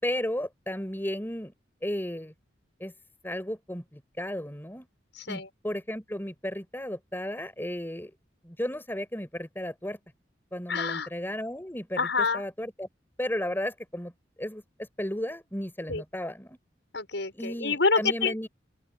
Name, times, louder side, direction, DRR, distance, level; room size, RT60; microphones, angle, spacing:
voice 1, 0.0-1.5 1.8-2.3 2.8-2.9 3.2-4.9 5.3-8.1 8.4-10.0 10.5-12.0 12.3-12.9 13.2-14.1 14.4-16.6 17.3-18.5, left 1 dB, 10° left, 5.8 m, -34 dB
voice 2, 5.2-5.5 10.7-11.1 12.0-12.5 15.9-16.0 16.9-18.5, left 4 dB, 70° left, 7.1 m, -27 dB
open air
head